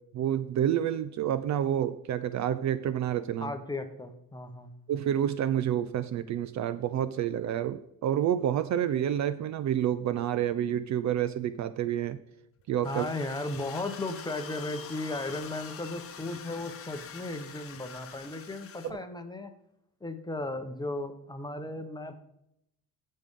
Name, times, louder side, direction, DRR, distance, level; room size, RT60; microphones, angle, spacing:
voice 1, 0.1-3.5 4.9-12.2 12.7-13.1 18.8-19.0, right 10 dB, 50° right, 13 dB, 0.5 m, -29 dB
voice 2, 3.4-4.7 12.8-19.5 20.0-22.2, left 2 dB, 10° left, 7 dB, 0.9 m, -36 dB
sound 1, 12.8-18.9, left 7 dB, 35° left, 0.9 m, -45 dB
15.5 x 5.4 x 3.6 m, 0.77 s
cardioid pair, 145°, 38 cm